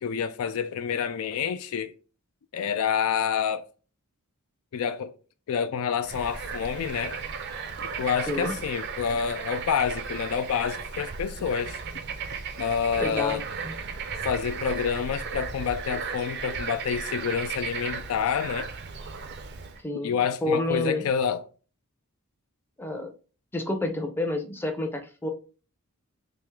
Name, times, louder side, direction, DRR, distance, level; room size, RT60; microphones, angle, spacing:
voice 1, 0.0-1.9 2.5-3.7 4.7-5.1 5.5-7.2 8.0-11.8 12.6-13.5 14.2-18.7 20.0-21.4, left 7 dB, 70° left, 0.3 m, -28 dB
Bird / Frog, 6.0-19.8, right 5 dB, 50° right, 0.4 m, -35 dB
voice 2, 13.0-13.7 19.8-20.1 20.4-21.0 22.8-23.1 23.5-25.3, left 2 dB, 10° left, 0.5 m, -29 dB
3.4 x 2.9 x 3.2 m
head